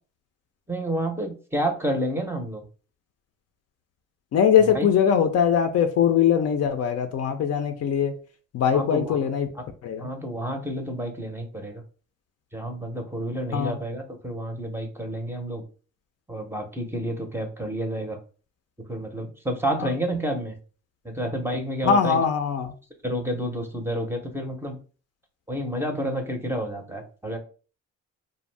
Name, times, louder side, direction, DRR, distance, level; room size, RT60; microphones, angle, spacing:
voice 1, 0.7-2.6 4.6-4.9 8.7-9.2 9.5-9.6 10.0-11.8 12.5-15.6 16.3-18.2 18.9-20.6 21.0-22.2 23.0-24.8 25.5-27.4, right 1 dB, 10° right, 0.6 m, -29 dB
voice 2, 4.3-8.1 8.5-9.5 9.8-10.1 13.5-13.8 21.8-22.7, left 8 dB, 55° left, 0.5 m, -21 dB
2.5 x 2.0 x 3.1 m
cardioid pair, 90°, 30 cm